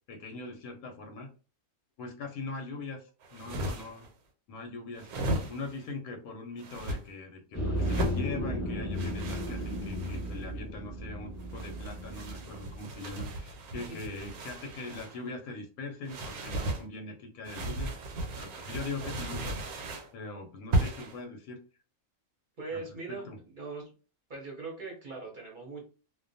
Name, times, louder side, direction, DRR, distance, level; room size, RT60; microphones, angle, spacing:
voice 1, 0.1-1.3 2.0-4.1 4.5-5.1 5.5-17.9 18.4-19.6 20.1-21.6 22.7-22.8 23.1-23.4, left 3 dB, 85° left, 4 dB, 1.1 m, -41 dB
sound 1, 3.2-4.1 5.0-5.8 6.6-7.0 7.8-8.2 8.9-10.4 11.4-15.2 16.0-16.8 17.4-20.1 20.7-21.2, right 1 dB, 85° right, 1.1 m, -35 dB
sound 2, 7.5-12.8, equal, 15° left, 0.7 m, -34 dB
voice 2, 22.6-23.3 23.5-23.9 24.3-25.8, right 3 dB, 45° right, -2 dB, 0.7 m, -40 dB
2.4 x 2.2 x 2.5 m, 0.35 s
omnidirectional pair, 1.5 m